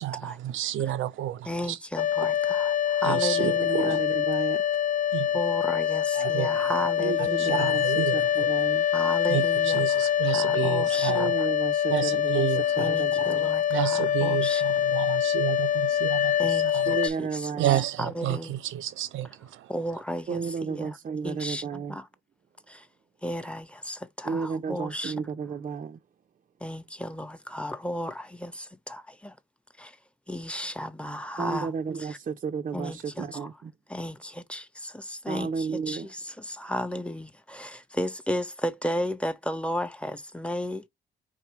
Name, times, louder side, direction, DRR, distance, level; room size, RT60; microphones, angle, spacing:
voice 1, 0.0-1.8 3.0-3.9 5.1-5.4 6.1-6.7 7.2-8.5 9.3-11.3 11.9-12.9 13.2-13.3 13.7-17.0 17.6-19.7, right 12 dB, 80° right, 0.6 m, -30 dB
voice 2, 1.4-4.0 5.3-7.7 8.9-11.3 12.8-14.6 16.4-17.5 18.0-18.6 19.7-21.0 21.2-22.1 22.7-22.9 23.2-25.1 26.6-29.4 29.8-30.0 30.3-31.7 32.0-32.2 32.7-33.5 33.9-40.8, equal, 5° left, 1.0 m, -34 dB
sound 1, 2.0-17.1, left 10 dB, 40° left, 0.6 m, -25 dB
voice 3, 3.7-4.6 7.0-8.9 11.1-13.5 16.9-17.8 20.3-22.0 24.2-26.0 31.4-33.7 35.3-36.1, right 5 dB, 40° right, 0.6 m, -33 dB
4.7 x 3.7 x 3.1 m
cardioid pair, 90°, 20 cm